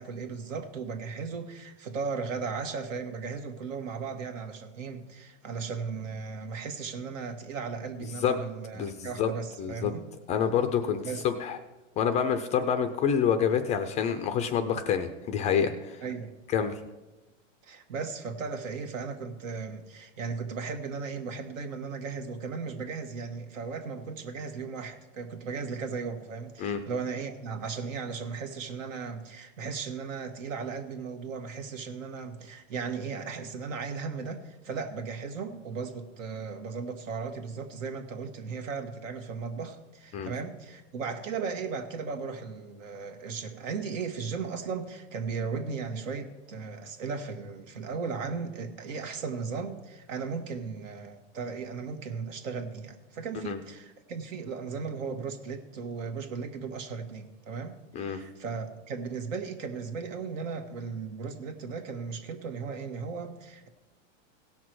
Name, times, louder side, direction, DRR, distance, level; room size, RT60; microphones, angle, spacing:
voice 1, 0.0-10.1 11.0-11.2 16.0-16.3 17.6-63.7, right 5 dB, 75° right, 7 dB, 1.6 m, -36 dB
voice 2, 8.7-9.3 9.6-9.9 10.3-11.6 12.0-16.0 16.5-16.8 26.6-26.8 40.1-40.3 53.4-53.6 57.9-58.2, left 7 dB, 20° left, 7 dB, 0.3 m, -27 dB
17.0 x 6.1 x 4.7 m, 1.1 s
supercardioid pair, 140°, 39 cm